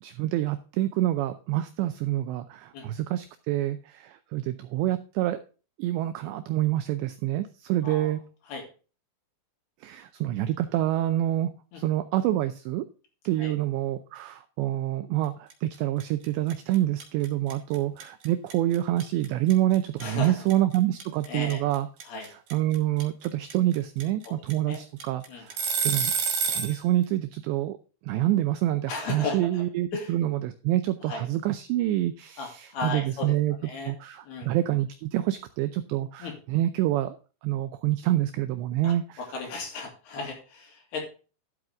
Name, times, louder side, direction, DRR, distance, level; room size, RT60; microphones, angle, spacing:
voice 1, 0.0-5.4 5.8-8.2 9.8-11.5 11.8-12.9 13.3-21.9 22.5-26.1 26.5-27.8 28.1-33.6 33.9-37.2 37.4-39.2, right 14 dB, 85° right, 11 dB, 2.5 m, -27 dB
voice 2, 7.8-8.1 8.5-8.7 11.7-11.8 13.4-13.6 20.0-20.5 21.3-21.6 22.0-22.3 24.2-24.8 25.3-25.5 28.9-29.6 29.9-30.1 31.1-31.3 32.4-33.9 34.2-34.5 36.2-36.3 38.8-41.0, left 4 dB, 55° left, 2 dB, 4.4 m, -36 dB
sound 1, 15.5-15.7 16.0-26.8, right 6 dB, 50° right, 3.8 m, -29 dB
12.5 x 7.8 x 3.5 m, 0.35 s
omnidirectional pair, 5.8 m